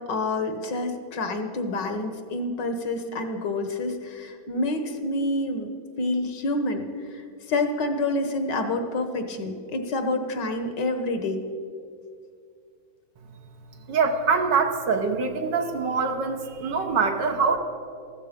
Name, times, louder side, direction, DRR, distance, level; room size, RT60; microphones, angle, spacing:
voice 1, 0.0-5.7 6.0-6.8 7.1-11.4, left 2 dB, 65° left, 7 dB, 1.7 m, -28 dB
voice 2, 13.9-17.6, right 5 dB, 65° right, 5 dB, 1.6 m, -24 dB
15.0 x 13.0 x 5.1 m, 2.3 s
omnidirectional pair, 2.2 m